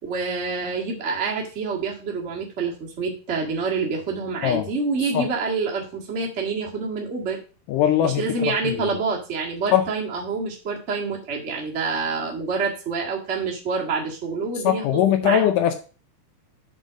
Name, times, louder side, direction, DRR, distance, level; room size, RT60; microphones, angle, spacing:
voice 1, 0.0-7.4 8.0-15.4, right 4 dB, 40° right, -2 dB, 1.0 m, -27 dB
voice 2, 7.7-8.9 9.7-9.9 14.6-15.7, left 10 dB, 80° left, 7 dB, 1.9 m, -21 dB
5.5 x 5.4 x 6.2 m, 0.35 s
omnidirectional pair, 4.4 m